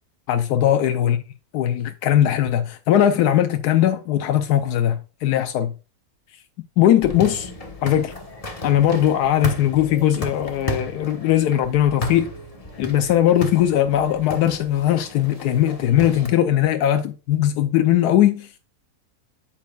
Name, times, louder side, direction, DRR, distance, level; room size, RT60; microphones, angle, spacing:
voice 1, 0.3-1.2 1.5-5.7 6.8-7.5 7.8-8.1 8.6-12.3 12.8-18.5, left 11 dB, 85° left, 1.2 m, -19 dB
sound 1, 7.0-16.3, equal, 25° left, 1.3 m, -34 dB
8.5 x 7.5 x 2.3 m
omnidirectional pair, 1.6 m